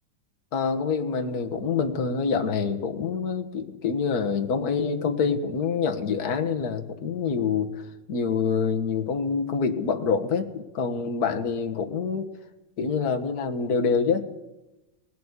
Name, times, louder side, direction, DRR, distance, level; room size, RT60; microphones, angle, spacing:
voice 1, 0.5-7.8 8.1-12.3 12.8-14.2, left 5 dB, 50° left, 6 dB, 1.9 m, -26 dB
20.0 x 16.5 x 8.3 m, 0.99 s
omnidirectional pair, 2.2 m